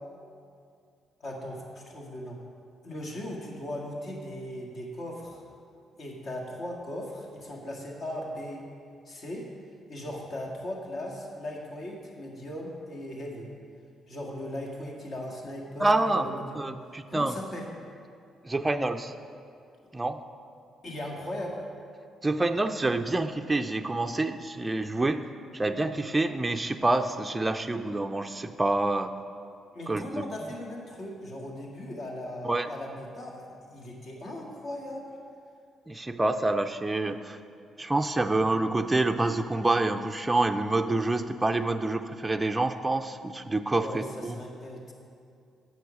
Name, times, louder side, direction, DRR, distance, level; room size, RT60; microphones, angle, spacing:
voice 1, 1.2-2.4 2.8-5.4 6.0-8.6 9.1-9.5 9.9-13.5 14.1-16.6 17.1-17.7 20.8-21.6 29.7-35.0 43.8-44.9, left 1 dB, 55° left, -1 dB, 1.9 m, -38 dB
voice 2, 15.8-16.3 16.5-17.4 18.4-19.1 19.9-20.2 22.2-25.3 25.5-29.1 29.9-30.3 32.4-32.7 35.9-37.4 37.8-44.4, right 2 dB, 15° right, 6 dB, 0.4 m, -27 dB
8.3 x 6.4 x 6.2 m, 2.4 s
cardioid pair, 90°, 0 cm